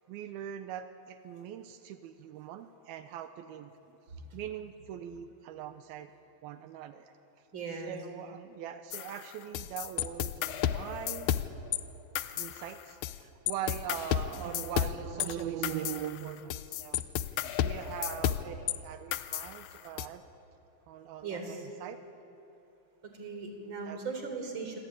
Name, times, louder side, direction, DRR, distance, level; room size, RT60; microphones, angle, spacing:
voice 1, 0.1-3.7 4.3-6.1 6.4-7.1 7.8-11.3 12.4-17.0 17.3-20.2 20.9-22.0 23.9-24.0, right 10 dB, 85° right, 9 dB, 2.7 m, -41 dB
voice 2, 7.5-7.9 21.2-21.7 23.0-24.8, right 4 dB, 30° right, 4 dB, 4.1 m, -38 dB
sound 1, 8.9-11.8 12.1-13.2 13.5-18.8 19.1-20.1, left 11 dB, 90° left, 1.7 m, -33 dB
26.0 x 25.5 x 8.9 m, 2.8 s
omnidirectional pair, 4.4 m